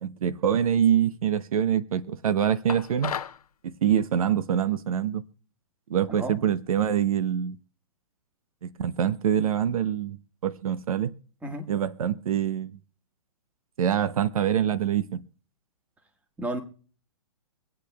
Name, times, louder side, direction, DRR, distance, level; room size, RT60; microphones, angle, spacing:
voice 1, 0.0-3.1 3.6-5.2 5.9-7.6 8.6-10.2 10.4-11.2 11.7-12.8 13.8-15.2, right 9 dB, 70° right, 0.7 m, -25 dB
sound 1, 2.7-3.4, left 8 dB, 80° left, 0.6 m, -33 dB
voice 2, 6.1-6.3 11.4-11.6 16.4-16.6, right 1 dB, 10° right, 1.5 m, -31 dB
25.5 x 8.6 x 2.3 m
hypercardioid pair, 130°, 19 cm